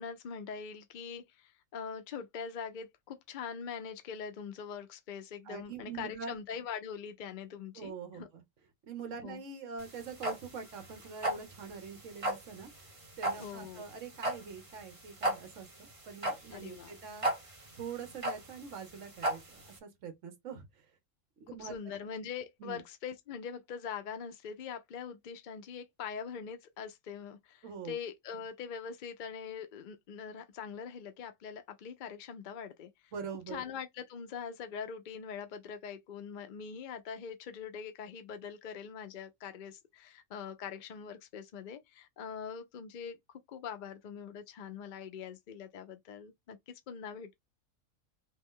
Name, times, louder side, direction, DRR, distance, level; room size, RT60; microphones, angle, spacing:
voice 1, 0.0-8.3 9.2-9.4 13.4-13.8 16.5-16.9 21.6-33.1 33.5-47.3, left 7 dB, 65° left, 0.4 m, -43 dB
voice 2, 5.4-6.4 7.7-8.4 8.8-12.9 13.2-17.3 17.8-20.9 21.4-21.7 22.6-22.8 27.6-27.9 33.1-33.6, right 6 dB, 60° right, 1.3 m, -44 dB
sound 1, 9.8-19.8, right 1 dB, 25° right, 0.9 m, -36 dB
3.2 x 3.0 x 3.6 m
omnidirectional pair, 1.5 m